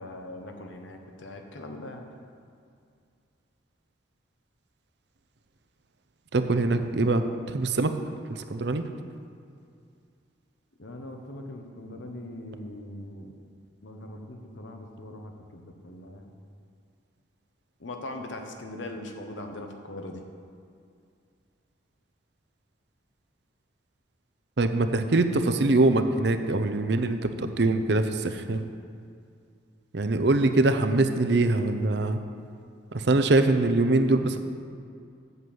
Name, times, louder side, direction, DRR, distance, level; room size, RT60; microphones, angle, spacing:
voice 1, 0.0-2.1 10.8-13.3 13.8-16.3 17.8-20.2, left 1 dB, 80° left, 3 dB, 1.1 m, -40 dB
voice 2, 6.3-7.9 8.3-8.8 24.6-28.6 29.9-32.2 32.9-34.4, right 2 dB, 65° right, 8 dB, 0.6 m, -23 dB
8.1 x 7.3 x 7.8 m, 2.3 s
head